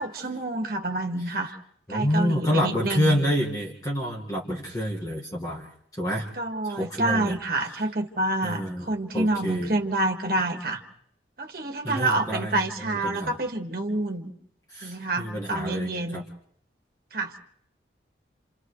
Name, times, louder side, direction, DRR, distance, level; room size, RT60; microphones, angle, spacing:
voice 1, 0.0-1.6 1.9-3.2 6.4-10.8 11.4-14.3 14.8-16.2 17.1-17.4, right 2 dB, 50° right, 3 dB, 1.8 m, -28 dB
voice 2, 1.9-5.7 6.0-6.3 6.7-7.4 8.4-8.9 9.1-9.7 11.8-12.5 12.9-13.3 14.7-16.2, equal, 20° left, -3 dB, 1.8 m, -28 dB
30.0 x 28.0 x 3.2 m, 0.65 s
head